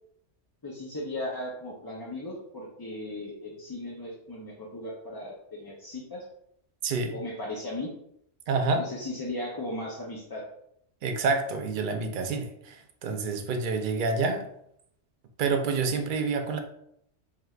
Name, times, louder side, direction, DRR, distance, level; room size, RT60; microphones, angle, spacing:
voice 1, 0.6-6.2 7.1-7.9 8.8-10.4, left 1 dB, 35° left, -4 dB, 0.4 m, -37 dB
voice 2, 6.8-7.2 8.5-8.8 11.0-14.4 15.4-16.6, right 4 dB, 60° right, 6 dB, 0.6 m, -28 dB
4.7 x 3.2 x 2.3 m, 0.73 s
omnidirectional pair, 1.2 m